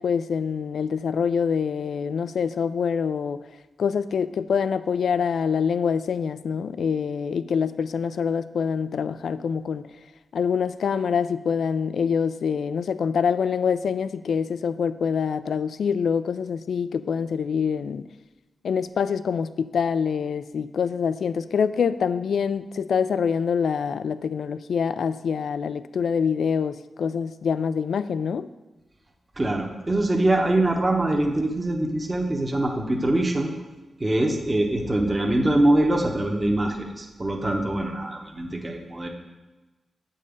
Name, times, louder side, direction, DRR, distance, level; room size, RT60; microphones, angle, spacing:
voice 1, 0.0-3.4 3.8-9.9 10.3-18.0 18.6-28.5, left 6 dB, 80° left, 13 dB, 0.3 m, -25 dB
voice 2, 29.4-33.5 34.0-39.1, right 1 dB, 25° right, 1 dB, 1.1 m, -23 dB
8.3 x 5.4 x 5.2 m, 1.1 s
cardioid pair, 90°, 0 cm